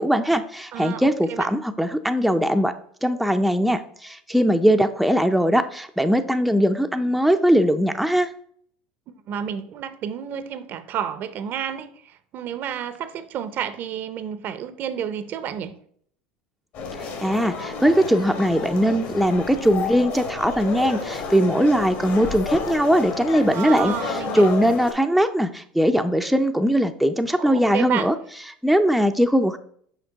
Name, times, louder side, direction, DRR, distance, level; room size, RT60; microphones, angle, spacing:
voice 1, 0.0-2.8 3.0-8.3 17.0-23.9 24.3-28.1 28.6-29.6, equal, ahead, 0.4 m, -20 dB
voice 2, 0.7-1.5 9.3-15.8 23.5-24.5 27.4-28.1, right 9 dB, 50° right, 0.5 m, -30 dB
sound 1, 16.7-24.9, left 4 dB, 60° left, 1.8 m, -31 dB
5.9 x 5.0 x 3.9 m
hypercardioid pair, 90°, 4 cm